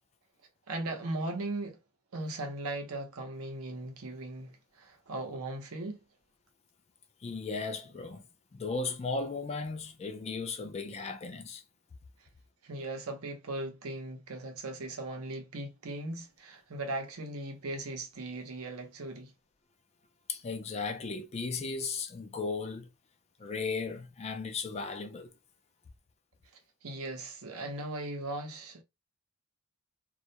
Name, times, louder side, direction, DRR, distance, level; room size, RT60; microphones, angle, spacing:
voice 1, 0.7-1.8 2.1-6.0 12.6-19.3 26.8-28.8, right 2 dB, 70° right, 0.7 m, -38 dB
voice 2, 7.2-8.2 8.5-11.6 20.3-22.9 23.4-25.3, left 4 dB, 30° left, 0.3 m, -36 dB
2.3 x 2.1 x 2.7 m
head